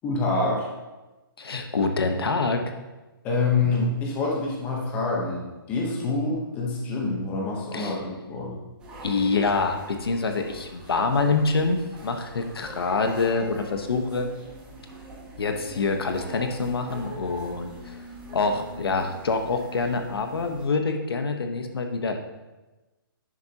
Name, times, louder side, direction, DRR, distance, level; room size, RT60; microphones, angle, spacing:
voice 1, 0.0-0.7 3.2-8.6, left 3 dB, 10° left, -2 dB, 1.0 m, -26 dB
voice 2, 1.4-2.6 7.7-8.0 9.0-14.3 15.4-17.9 18.3-22.2, left 4 dB, 85° left, 5 dB, 1.2 m, -26 dB
sound 1, 8.8-20.6, right 1 dB, 10° right, 1.2 m, -43 dB
10.5 x 7.3 x 2.9 m, 1.1 s
hypercardioid pair, 175°, 12 cm